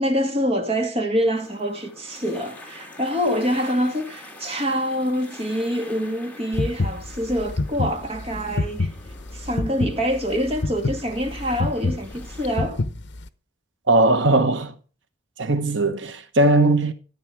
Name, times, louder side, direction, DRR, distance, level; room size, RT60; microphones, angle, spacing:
voice 1, 0.0-8.9 9.3-12.8, equal, 30° right, 2.4 m, -25 dB
sound 1, 1.3-12.5, left 2 dB, 10° left, 3.1 m, -45 dB
sound 2, 6.5-13.3, left 2 dB, 65° left, 0.9 m, -26 dB
voice 2, 13.9-14.7 15.4-16.9, right 2 dB, 75° right, 1.4 m, -19 dB
13.5 x 9.1 x 6.1 m
head